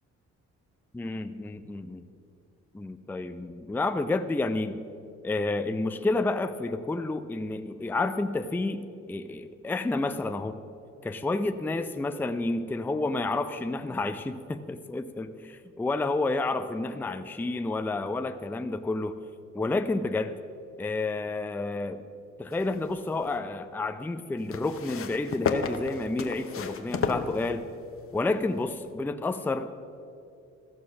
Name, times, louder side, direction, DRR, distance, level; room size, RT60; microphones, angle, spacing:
voice 1, 0.9-2.0 2.7-4.8 5.2-10.6 11.0-19.2 19.5-20.3 20.8-22.0 22.4-27.7 28.1-29.7, left 2 dB, 5° left, 9 dB, 0.4 m, -30 dB
sound 1, 22.5-23.4 24.5-27.9 28.8-28.9, left 5 dB, 45° left, 0.9 m, -33 dB
14.5 x 6.3 x 6.0 m, 2.4 s
cardioid pair, 90°, 30 cm